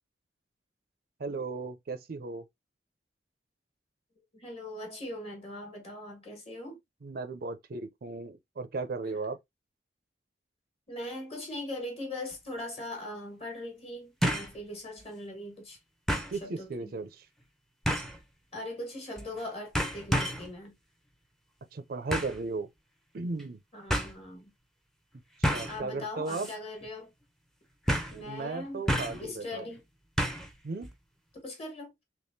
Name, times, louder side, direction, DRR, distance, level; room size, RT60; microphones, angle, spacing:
voice 1, 1.2-2.4 7.0-9.4 16.3-17.3 21.7-22.7 23.1-23.6 25.4-26.5 28.1-29.7 30.6-30.9, right 3 dB, 55° right, 0.5 m, -36 dB
voice 2, 4.3-6.8 10.9-15.8 16.3-16.9 18.5-20.8 23.7-24.5 25.7-27.1 28.1-28.8 29.2-29.8 31.4-31.9, left 1 dB, 35° left, 1.4 m, -40 dB
sound 1, 12.3-12.4 14.2-14.6 15.0-15.1 16.1-16.4 17.8-18.2 19.2-19.4 19.7-20.5 22.1-22.4 23.4-23.5 23.9-24.1 25.4-25.8 26.3-26.5 26.8-26.9 27.9-28.2 28.9-29.3 30.2-30.5 30.8-30.9, equal, ahead, 0.6 m, -29 dB
3.5 x 3.0 x 2.6 m
head